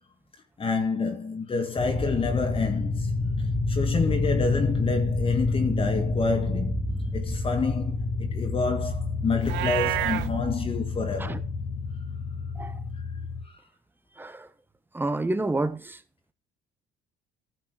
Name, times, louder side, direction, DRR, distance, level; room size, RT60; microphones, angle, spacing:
voice 1, 0.6-3.1 3.7-6.8 7.1-11.4, left 4 dB, 30° left, 1.8 m, -28 dB
sound 1, 1.8-13.4, left 2 dB, 15° left, 1.8 m, -29 dB
Livestock farm animals working animals, 9.4-10.3, right 18 dB, 80° right, 0.6 m, -28 dB
voice 2, 14.1-14.5 14.9-16.0, right 2 dB, 10° right, 1.2 m, -29 dB
15.0 x 6.0 x 6.2 m
cardioid pair, 120°, 18 cm